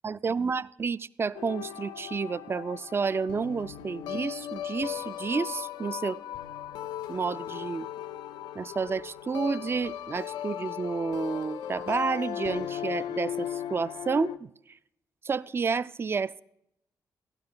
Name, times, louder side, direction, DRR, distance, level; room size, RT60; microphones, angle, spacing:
voice 1, 0.0-6.2 7.1-7.9 8.6-14.5 15.2-16.4, right 5 dB, 35° right, 18 dB, 0.4 m, -30 dB
sound 1, 1.3-14.4, left 11 dB, 90° left, 0.4 m, -37 dB
12.5 x 11.5 x 3.9 m, 0.78 s
cardioid pair, 65°, 7 cm